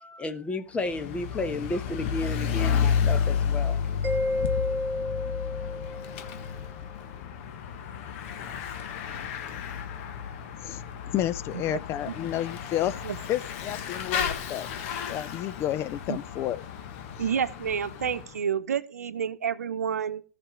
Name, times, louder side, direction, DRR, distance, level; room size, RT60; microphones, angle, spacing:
voice 1, 0.0-3.8, left 2 dB, 15° left, 1.1 m, -32 dB
Bicycle / Mechanisms, 0.7-18.3, left 7 dB, 50° left, 1.6 m, -32 dB
Mallet percussion, 4.0-6.6, left 2 dB, 20° right, 2.4 m, -31 dB
voice 2, 11.1-13.0 13.3-16.6, left 12 dB, 30° left, 0.6 m, -31 dB
voice 3, 17.2-20.2, right 7 dB, 75° right, 0.9 m, -29 dB
17.0 x 6.1 x 3.7 m
figure-of-eight pair, 110°, 8 cm